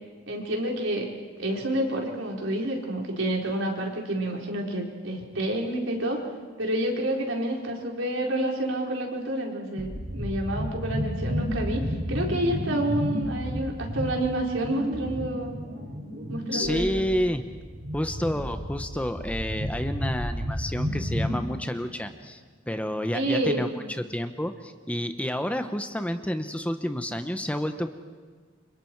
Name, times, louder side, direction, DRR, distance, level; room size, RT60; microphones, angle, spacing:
voice 1, 0.3-1.1 1.4-6.2 6.6-15.5 16.3-17.0 23.1-23.6, right 1 dB, 85° right, 0 dB, 4.5 m, -29 dB
sound 1, 9.8-21.4, equal, 50° right, 7.7 m, -32 dB
voice 2, 16.5-17.4 17.9-22.4 22.7-27.9, equal, 5° left, 8 dB, 1.0 m, -29 dB
30.0 x 26.0 x 4.7 m, 1.5 s
head